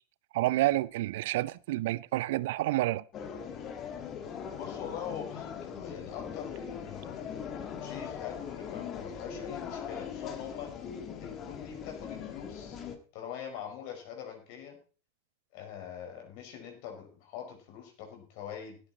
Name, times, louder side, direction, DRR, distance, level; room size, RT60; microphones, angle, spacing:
voice 1, 0.3-3.0, right 16 dB, 50° right, 0.5 m, -29 dB
sound 1, 3.1-13.0, left 7 dB, 30° left, 1.9 m, -40 dB
voice 2, 4.5-10.7 11.2-12.8 13.1-14.8 15.5-18.8, left 8 dB, 45° left, 5.1 m, -43 dB
16.5 x 9.4 x 4.2 m
figure-of-eight pair, 90°, 0 cm